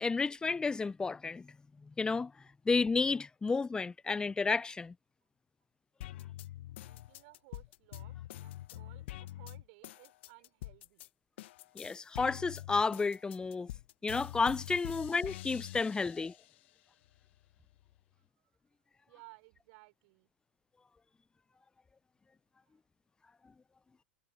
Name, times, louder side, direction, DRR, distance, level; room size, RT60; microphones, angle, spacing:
voice 1, 0.0-1.5 2.0-2.3 2.7-4.9 11.8-13.7 14.0-16.3, left 4 dB, 10° left, 0.5 m, -31 dB
sound 1, 6.0-11.1 11.4-16.6 17.0-18.0, left 15 dB, 60° left, 1.3 m, -46 dB
voice 2, 6.8-11.1 18.4-18.5 19.1-20.3, right 29 dB, 55° right, 4.5 m, -59 dB
hypercardioid pair, 95°, 7 cm